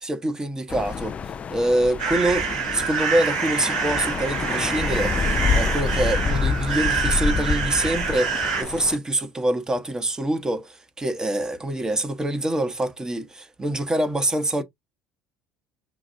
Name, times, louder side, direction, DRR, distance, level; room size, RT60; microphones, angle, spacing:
voice 1, 0.0-1.2 1.5-14.6, right 1 dB, 20° right, 1.1 m, -25 dB
sound 1, 0.7-9.0, left 5 dB, 35° left, 0.4 m, -27 dB
sound 2, 2.0-8.6, right 6 dB, 80° right, 1.3 m, -26 dB
6.0 x 2.4 x 2.6 m
hypercardioid pair, 65°, 4 cm